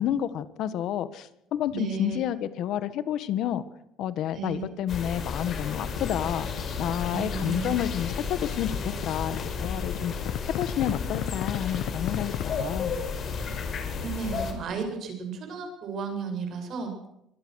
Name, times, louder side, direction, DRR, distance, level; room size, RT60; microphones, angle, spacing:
voice 1, 0.0-3.6 4.0-6.5 6.8-10.1 10.5-13.0, left 10 dB, 60° left, 14 dB, 1.6 m, -30 dB
voice 2, 1.7-2.2 4.3-4.7 7.1-7.8 14.0-17.1, right 6 dB, 50° right, 5 dB, 8.0 m, -34 dB
sound 1, 4.9-14.5, left 5 dB, 40° left, 5.3 m, -32 dB
sound 2, 5.7-6.6 6.9-12.6, left 15 dB, 85° left, 0.9 m, -37 dB
25.0 x 21.0 x 6.5 m, 0.81 s
cardioid pair, 150°, 0 cm